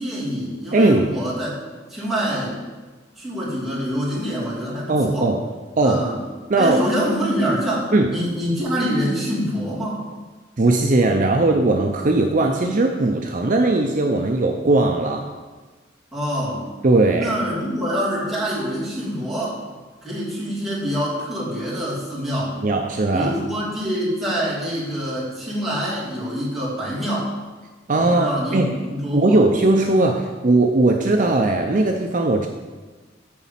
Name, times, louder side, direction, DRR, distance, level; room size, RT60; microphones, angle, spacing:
voice 1, 0.0-1.5 1.9-2.6 3.2-5.3 5.8-6.2 6.6-10.1 16.1-16.6 17.2-19.6 20.0-22.6 23.1-27.3 28.0-29.4, equal, ahead, -9 dB, 2.9 m, -25 dB
voice 2, 0.7-1.1 4.9-5.4 5.8-6.0 6.5-6.8 7.9-8.1 10.6-15.3 16.8-17.3 22.6-23.3 27.9-28.7 29.1-32.5, right 2 dB, 45° right, 3 dB, 0.6 m, -18 dB
9.9 x 4.1 x 7.3 m, 1.3 s
head